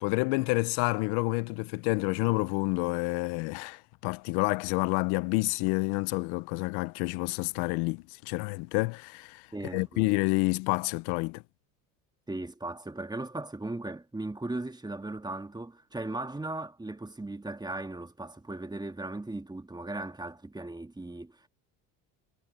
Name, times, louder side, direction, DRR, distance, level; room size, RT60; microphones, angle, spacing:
voice 1, 0.0-9.4 9.7-11.4, left 25 dB, 80° left, 0.9 m, -29 dB
voice 2, 9.5-10.1 12.3-21.5, right 2 dB, 10° right, 1.8 m, -37 dB
supercardioid pair, 75°, 39 cm